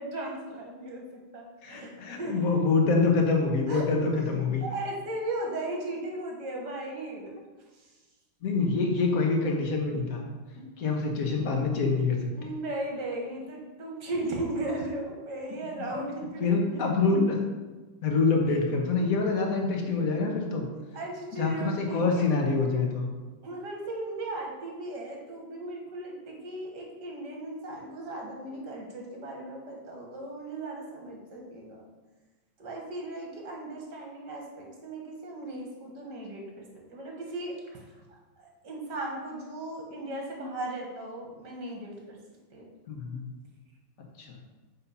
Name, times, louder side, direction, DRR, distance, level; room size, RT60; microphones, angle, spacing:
voice 1, 0.0-2.5 3.7-3.9 4.6-7.3 12.4-17.0 18.5-18.6 20.9-22.4 23.4-31.9 32.6-36.7 36.9-37.8 38.1-42.2 42.5-42.7, right 1 dB, 60° right, 0 dB, 2.1 m, -37 dB
voice 2, 1.6-4.6 8.4-10.2 10.8-12.2 16.4-17.4 18.0-20.6 21.4-23.1 42.9-43.2 44.2-44.4, left 4 dB, 50° left, 1 dB, 1.6 m, -26 dB
8.1 x 4.4 x 5.6 m, 1.2 s
omnidirectional pair, 2.2 m